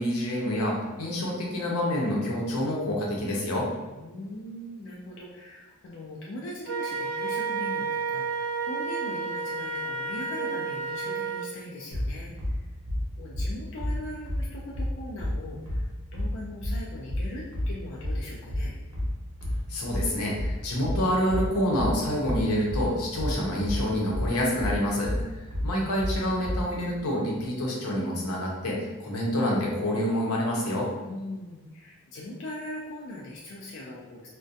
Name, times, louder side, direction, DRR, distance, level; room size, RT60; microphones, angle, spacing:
voice 1, 0.0-3.7 19.7-25.1 25.6-30.9, equal, 90° left, -3 dB, 0.7 m, -27 dB
voice 2, 4.0-12.7 13.2-18.7 25.1-25.7 31.0-34.3, left 1 dB, 55° left, -3 dB, 0.3 m, -40 dB
Wind instrument woodwind instrument, 6.7-11.5, right 4 dB, 90° right, 0.3 m, -31 dB
sound 1, 11.9-26.7, left 1 dB, 60° right, 0.7 m, -30 dB
2.4 x 2.1 x 2.6 m, 1.2 s
head